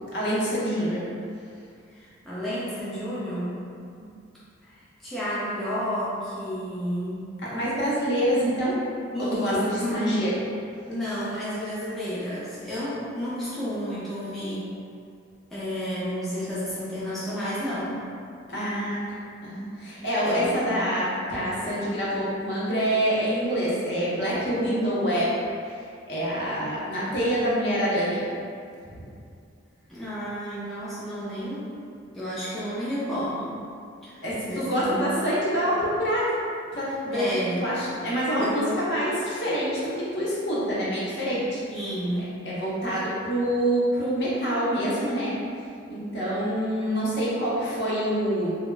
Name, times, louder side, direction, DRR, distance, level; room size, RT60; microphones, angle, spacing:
voice 1, 0.1-1.0 7.4-8.8 9.2-10.3 18.5-19.0 19.4-25.3 25.7-25.8 26.1-28.2 28.9-29.1 34.2-36.3 36.7-37.2 37.6-41.6 42.4-45.4 45.9-48.6, equal, 55° left, -8 dB, 0.7 m, -26 dB
voice 2, 1.9-3.6 4.0-4.1 4.6-7.3 9.1-10.0 10.9-14.7 15.5-18.0 20.2-21.0 29.9-31.7 32.1-33.6 34.0-34.2 34.5-35.0 37.1-37.6 38.4-38.8 41.7-42.4, equal, ahead, -11 dB, 0.3 m, -31 dB
2.2 x 2.0 x 3.1 m, 2.4 s
head